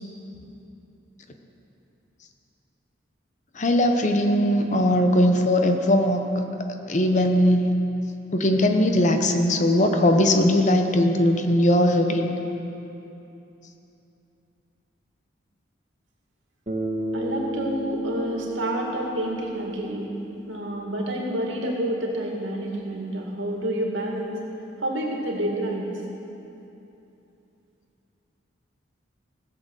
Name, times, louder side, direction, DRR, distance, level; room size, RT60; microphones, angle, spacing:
voice 1, 3.6-6.2 6.9-7.7 8.3-12.3, left 1 dB, 40° left, 5 dB, 0.8 m, -20 dB
Bass guitar, 16.7-21.0, right 1 dB, 35° right, 1.5 m, -33 dB
voice 2, 17.1-20.1 20.4-24.3 24.8-25.9, right 1 dB, 85° right, -1 dB, 2.3 m, -28 dB
16.5 x 7.6 x 6.6 m, 2.9 s
head